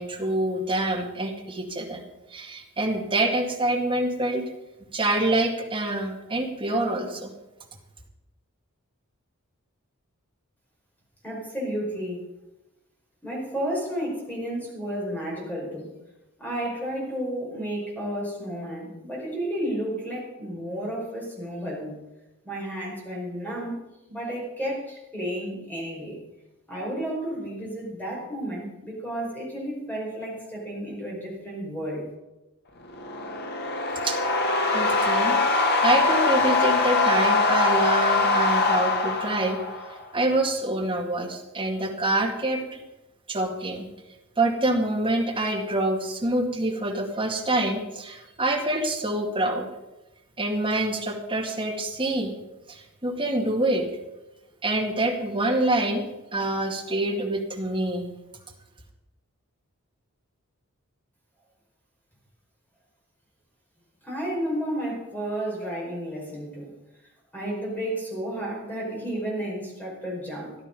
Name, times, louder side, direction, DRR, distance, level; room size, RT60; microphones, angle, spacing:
voice 1, 0.0-2.0 2.3-4.5 4.9-7.3 34.0-34.2 34.7-35.4 35.8-39.6 40.1-42.8 43.3-43.8 44.4-49.7 50.4-52.3 52.7-53.9 54.6-58.1, right 1 dB, 25° right, 0 dB, 2.1 m, -26 dB
voice 2, 11.2-12.2 13.2-15.9 16.4-22.0 22.4-23.8 24.1-26.2 26.7-32.1 64.0-66.7 67.3-70.6, right 1 dB, 10° left, -4 dB, 5.0 m, -32 dB
sound 1, 32.9-40.0, left 3 dB, 45° left, 1.5 m, -23 dB
14.0 x 11.0 x 5.5 m, 1.0 s
head